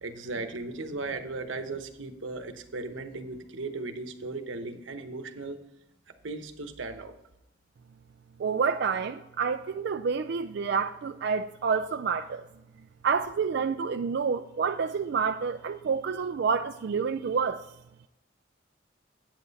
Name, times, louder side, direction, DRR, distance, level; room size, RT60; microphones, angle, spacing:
voice 1, 0.0-5.6 6.2-7.2, right 3 dB, 90° right, 1.0 m, -37 dB
voice 2, 8.4-12.4 13.0-17.6, right 5 dB, 60° right, 0.4 m, -28 dB
9.0 x 7.6 x 4.1 m
head